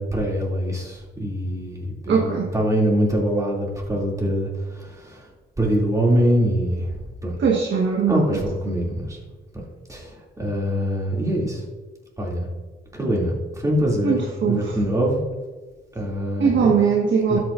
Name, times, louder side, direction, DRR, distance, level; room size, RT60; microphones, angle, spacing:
voice 1, 0.0-4.5 4.8-5.2 5.6-7.0 7.2-7.4 8.1-9.2 9.9-11.6 12.2-12.5 12.9-15.2 15.9-16.7 17.3-17.4, equal, 15° right, -3 dB, 2.7 m, -23 dB
voice 2, 2.1-2.5 7.4-8.4 14.0-14.8 16.4-17.4, right 6 dB, 65° right, -1 dB, 1.4 m, -20 dB
12.5 x 8.7 x 2.6 m, 1.3 s
cardioid pair, 90°, 20 cm